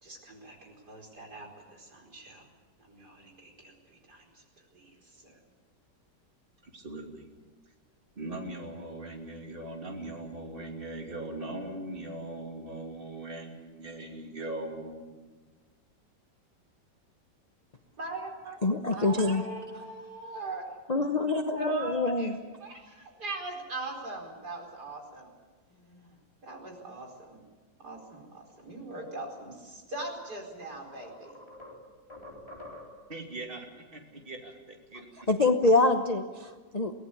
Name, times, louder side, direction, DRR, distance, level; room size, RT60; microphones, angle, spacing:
voice 1, 0.0-2.5 2.8-4.4 4.7-5.4 18.0-20.6 20.9-21.1 21.6-25.3 25.7-27.4 27.8-31.4, right 2 dB, 65° right, 0 dB, 5.1 m, -41 dB
voice 2, 6.6-7.3 8.2-15.4 33.1-35.1, right 2 dB, 30° right, 2 dB, 2.9 m, -40 dB
voice 3, 18.6-19.4 20.9-22.3 35.3-36.9, left 2 dB, 30° left, 5 dB, 0.8 m, -25 dB
sound 1, 30.6-33.2, left 1 dB, 15° left, 4.1 m, -48 dB
23.5 x 18.0 x 8.6 m, 1.4 s
omnidirectional pair, 1.9 m